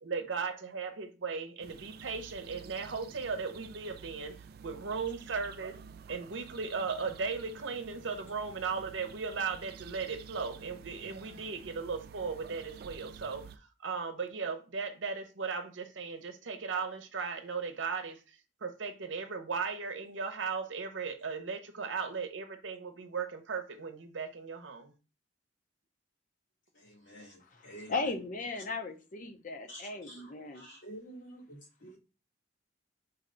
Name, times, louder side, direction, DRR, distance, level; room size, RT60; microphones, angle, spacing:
voice 1, 0.0-4.4 4.6-5.8 6.1-13.5 13.8-18.2 18.6-24.9, right 5 dB, 80° right, 0.7 m, -37 dB
sound 1, 1.6-13.6, right 6 dB, 55° right, 0.3 m, -50 dB
voice 2, 26.7-27.9 29.7-32.0, right 1 dB, 80° left, 2.8 m, -49 dB
voice 3, 27.4-30.7, left 3 dB, 45° left, 0.7 m, -37 dB
4.1 x 3.2 x 3.8 m
head